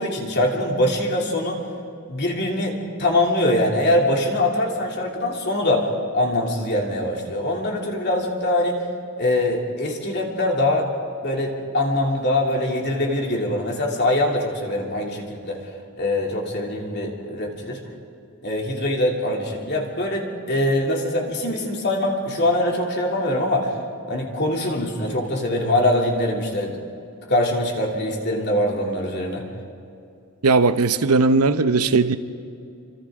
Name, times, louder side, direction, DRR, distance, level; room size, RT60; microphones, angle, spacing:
voice 1, 0.0-1.6 2.1-5.9 6.1-8.8 9.2-10.9 11.2-15.6 16.0-17.8 18.4-23.7 24.1-26.8 27.3-29.5, left 1 dB, 50° left, 2.9 m, -23 dB
voice 2, 30.4-32.2, right 4 dB, 85° right, 0.8 m, -18 dB
29.0 x 25.0 x 3.8 m
head